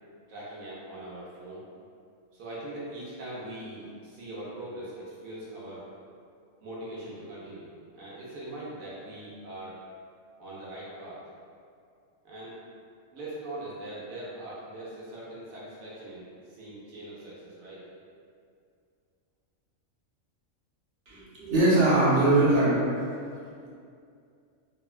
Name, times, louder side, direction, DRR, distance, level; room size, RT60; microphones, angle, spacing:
voice 1, 0.3-1.6 2.3-5.8 6.6-9.8 10.4-11.2 12.2-12.6 13.1-17.8, right 1 dB, 85° right, -7 dB, 1.1 m, -41 dB
voice 2, 21.1-22.8 23.3-23.7, right 2 dB, 65° right, -8 dB, 1.0 m, -22 dB
3.0 x 2.1 x 2.3 m, 2.4 s
omnidirectional pair, 1.4 m